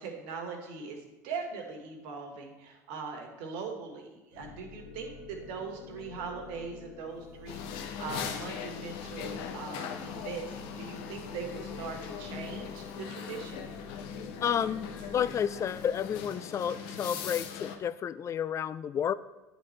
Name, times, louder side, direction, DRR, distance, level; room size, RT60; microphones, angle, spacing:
voice 1, 0.0-13.7, right 5 dB, 65° right, 3 dB, 1.5 m, -41 dB
sound 1, 4.3-16.3, left 4 dB, 80° left, 2.0 m, -49 dB
sound 2, 7.5-17.8, left 7 dB, 65° left, 0.9 m, -40 dB
voice 2, 14.4-19.1, left 8 dB, 35° left, 15 dB, 0.3 m, -31 dB
10.0 x 4.1 x 3.2 m, 1.1 s
hypercardioid pair, 80°, 9 cm